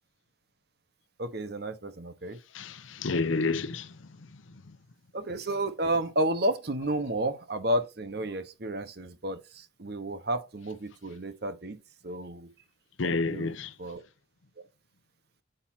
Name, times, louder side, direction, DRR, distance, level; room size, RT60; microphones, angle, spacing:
voice 1, 1.2-2.4 5.1-12.5 13.0-14.0, right 1 dB, 55° right, 1.0 m, -32 dB
voice 2, 2.5-4.8 13.0-13.7, left 3 dB, 90° left, 0.7 m, -31 dB
7.8 x 5.6 x 4.4 m
head